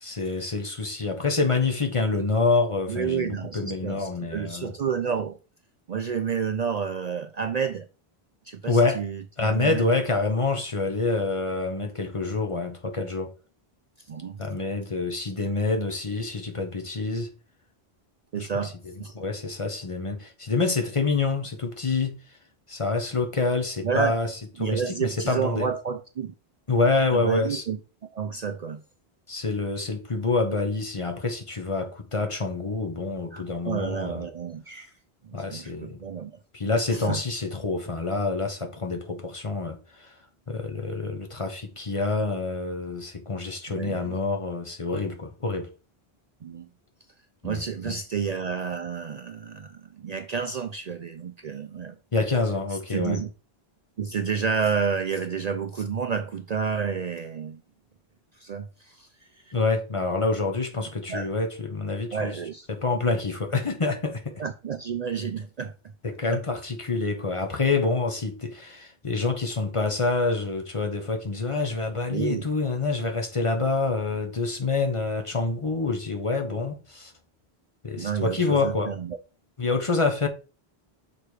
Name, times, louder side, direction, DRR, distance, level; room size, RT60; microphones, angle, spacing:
voice 1, 0.0-4.7 8.7-9.0 9.4-13.3 14.4-17.3 18.4-18.7 19.1-22.2 22.7-24.3 24.6-25.7 26.7-27.6 29.3-34.3 35.3-36.0 36.5-40.1 40.5-45.7 47.4-48.0 52.1-53.2 59.5-62.3 62.7-64.4 66.0-77.1 77.8-78.9 79.6-80.3, left 3 dB, 35° left, 0.9 m, -27 dB
voice 2, 2.9-5.4 5.9-7.9 8.5-9.9 14.1-14.4 18.3-19.1 23.8-24.2 24.6-26.3 27.1-27.8 28.1-28.8 33.3-34.9 35.2-36.4 36.9-37.2 43.7-44.2 46.4-46.7 47.4-52.0 52.9-53.3 54.0-57.6 58.4-59.1 59.5-59.6 61.1-61.3 62.1-62.7 64.4-65.7 72.1-72.5 78.0-79.2, right 6 dB, 50° right, 0.5 m, -30 dB
6.6 x 3.4 x 4.7 m
omnidirectional pair, 1.0 m